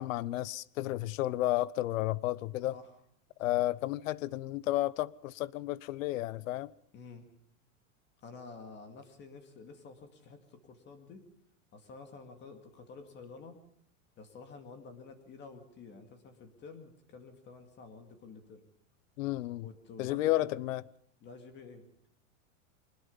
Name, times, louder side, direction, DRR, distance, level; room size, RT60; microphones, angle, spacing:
voice 1, 0.0-2.7 3.4-6.7 19.2-19.7 20.0-20.8, left 16 dB, 75° left, 0.8 m, -32 dB
voice 2, 3.5-3.8 6.9-7.3 8.2-11.2 11.7-13.6 14.2-18.7 19.6-20.5 21.2-21.9, left 4 dB, 25° left, 2.3 m, -50 dB
23.5 x 20.5 x 5.5 m
supercardioid pair, 160°, 40 cm